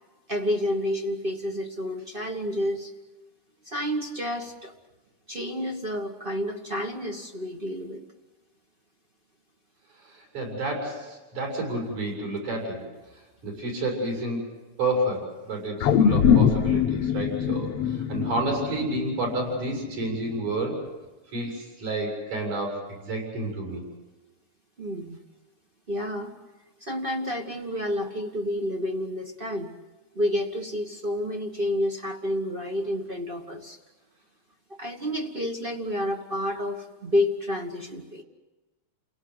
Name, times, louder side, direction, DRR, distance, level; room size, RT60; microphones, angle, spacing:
voice 1, 0.3-2.9 3.6-4.7 5.3-8.0 24.8-25.2 25.9-26.3 26.8-29.7 30.1-33.8 34.8-38.2, left 1 dB, 40° right, 3 dB, 0.7 m, -29 dB
voice 2, 10.0-12.8 13.4-14.4 14.8-20.8 21.3-23.8, right 2 dB, 80° right, -1 dB, 8.0 m, -30 dB
sound 1, 15.8-20.3 20.7-20.8, left 7 dB, 65° left, 1.6 m, -23 dB
30.0 x 18.0 x 7.9 m, 1.2 s
omnidirectional pair, 3.4 m